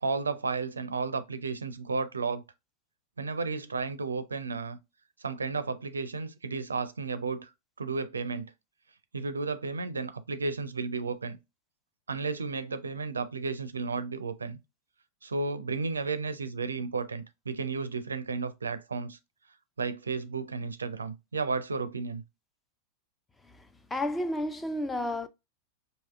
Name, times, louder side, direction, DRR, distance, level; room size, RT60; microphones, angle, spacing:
voice 1, 0.0-2.4 3.2-4.8 5.2-7.5 7.8-8.5 9.1-11.4 12.1-14.6 15.2-19.2 19.8-22.2, right 4 dB, 75° right, 0.4 m, -33 dB
voice 2, 23.9-25.3, left 1 dB, 10° left, 0.4 m, -31 dB
4.7 x 2.7 x 2.2 m
figure-of-eight pair, 90°, 0 cm